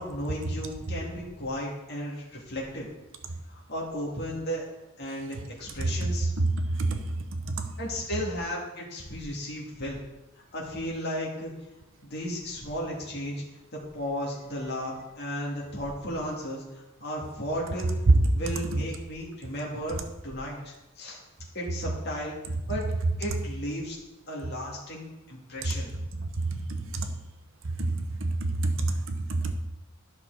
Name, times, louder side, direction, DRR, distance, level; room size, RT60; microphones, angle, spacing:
voice 1, 0.0-2.9 3.5-4.6 5.0-6.3 7.8-10.0 10.5-11.5 12.0-13.4 13.7-17.9 18.3-21.2 21.5-22.4 22.7-22.8 23.2-24.0 24.3-25.9, equal, 50° left, -3 dB, 2.1 m, -34 dB
voice 2, 26.7-27.1 27.8-28.3 28.6-28.9 29.3-29.5, right 2 dB, 65° right, 6 dB, 0.9 m, -28 dB
11.5 x 5.9 x 3.9 m, 1.0 s
head